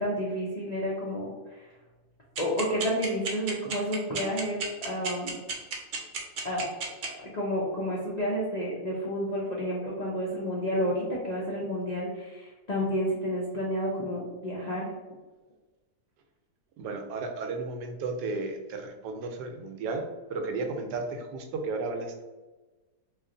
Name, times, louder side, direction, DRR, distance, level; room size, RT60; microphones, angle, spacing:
voice 1, 0.0-1.7 2.4-5.4 6.4-6.7 7.2-14.9, equal, 80° left, -5 dB, 0.3 m, -30 dB
sound 1, 2.4-7.1, right 5 dB, 60° right, 0.9 m, -32 dB
voice 2, 16.8-22.2, right 3 dB, 85° right, 4 dB, 1.2 m, -34 dB
3.1 x 2.4 x 3.7 m, 1.2 s
omnidirectional pair, 1.7 m